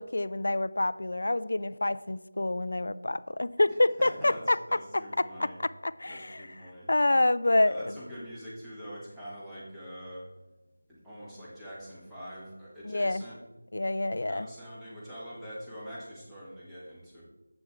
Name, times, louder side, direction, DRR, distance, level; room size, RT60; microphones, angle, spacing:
voice 1, 0.0-4.6 4.9-6.5 6.9-7.9 12.8-13.2 13.7-14.5, left 2 dB, 50° left, 15 dB, 0.4 m, -27 dB
voice 2, 3.7-5.6 6.1-6.9 7.6-10.3 10.9-13.4 14.3-17.2, equal, ahead, -10 dB, 1.5 m, -44 dB
10.5 x 8.0 x 3.5 m, 1.1 s
figure-of-eight pair, 165°, 0 cm